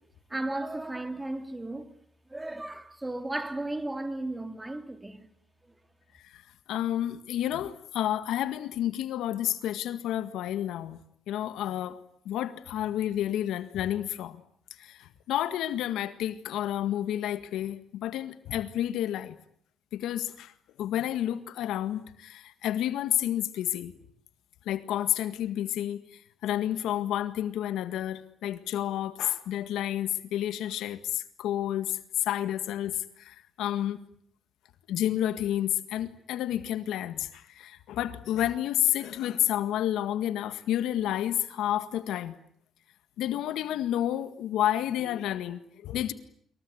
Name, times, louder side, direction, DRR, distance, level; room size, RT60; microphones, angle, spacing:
voice 1, 0.3-2.0 2.3-5.3 5.6-5.7, right 2 dB, 15° right, 2.7 m, -35 dB
voice 2, 6.7-11.0 11.3-12.0 12.3-14.4 14.8-19.4 19.9-23.9 24.7-34.0 34.9-42.4 43.2-46.1, left 12 dB, 85° left, 1.8 m, -30 dB
26.5 x 23.5 x 9.7 m
cardioid pair, 90°, 0 cm